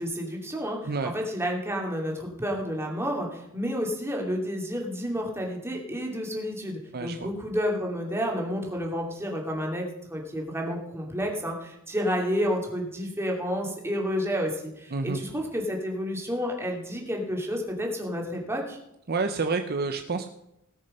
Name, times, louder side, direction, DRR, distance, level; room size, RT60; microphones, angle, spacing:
voice 1, 0.0-18.8, equal, 10° right, 0 dB, 2.7 m, -30 dB
voice 2, 6.9-7.3 14.9-15.2 19.1-20.3, right 4 dB, 50° right, 7 dB, 0.7 m, -28 dB
18.0 x 6.6 x 5.5 m, 0.83 s
head